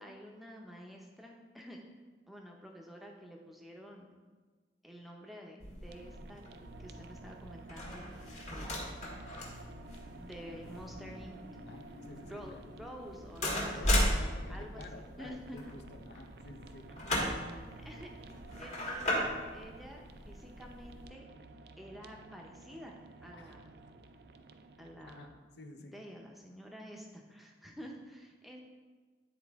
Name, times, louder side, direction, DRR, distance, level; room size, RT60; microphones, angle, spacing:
voice 1, 0.0-1.8 2.3-4.1 4.8-9.3 10.1-11.4 12.3-15.7 17.8-18.1 18.5-21.3 21.8-23.8 24.8-25.4 25.8-28.6, equal, ahead, 0 dB, 0.7 m, -50 dB
sound 1, 5.6-21.1, left 1 dB, 40° left, 1.5 m, -37 dB
sound 2, 5.9-25.3, right 3 dB, 65° right, 0.4 m, -53 dB
voice 2, 11.7-12.6 13.6-16.9 23.3-23.6 25.0-25.3 25.6-25.9, left 2 dB, 75° left, 5 dB, 0.6 m, -50 dB
9.6 x 4.2 x 3.5 m, 1.4 s
head